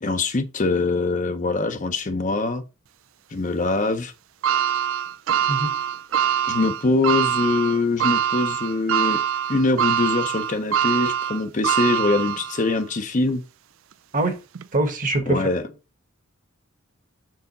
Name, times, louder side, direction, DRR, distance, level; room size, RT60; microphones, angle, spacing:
voice 1, 0.0-2.6 3.3-4.1 6.5-9.2 9.5-13.4 15.3-15.6, left 3 dB, 35° left, 0.6 m, -23 dB
sound 1, 4.4-12.8 13.3-13.4 14.5-14.6, right 9 dB, 70° right, 0.4 m, -24 dB
voice 2, 14.7-15.4, right 2 dB, 40° right, 1.2 m, -23 dB
6.2 x 4.7 x 4.0 m
head